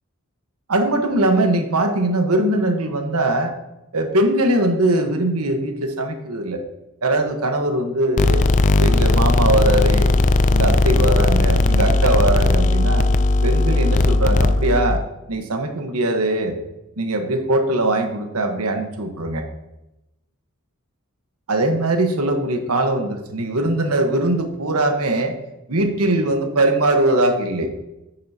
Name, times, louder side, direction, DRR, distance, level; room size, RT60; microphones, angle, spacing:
voice 1, 0.7-3.5 3.9-6.6 7.0-8.5 8.8-10.1 10.5-13.1 13.4-15.0 15.3-16.6 17.0-19.4 21.5-25.3 25.7-27.7, right 1 dB, 85° right, 5 dB, 1.3 m, -21 dB
sound 1, 8.2-15.0, left 2 dB, 35° left, 0.4 m, -17 dB
10.5 x 8.5 x 2.8 m, 0.93 s
head